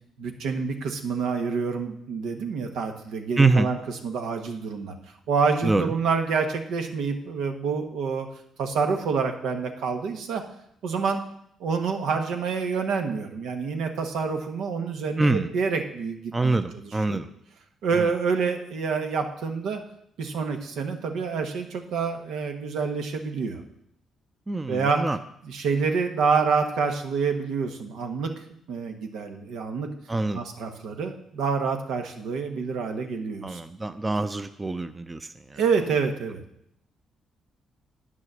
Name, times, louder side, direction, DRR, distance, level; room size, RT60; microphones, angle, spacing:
voice 1, 0.2-4.9 5.3-8.3 8.6-10.4 10.8-11.2 11.6-17.2 17.8-19.8 20.2-23.6 24.7-25.0 25.4-28.3 28.7-29.9 30.3-33.6 35.5-36.4, right 5 dB, 80° right, 5 dB, 1.3 m, -27 dB
voice 2, 3.4-3.7 5.6-5.9 15.2-15.5 16.3-17.3 17.9-18.1 24.5-25.2 30.1-30.4 33.4-35.6, right 3 dB, 20° right, 10 dB, 0.6 m, -25 dB
9.5 x 6.3 x 7.5 m, 0.74 s
cardioid pair, 90°, 0 cm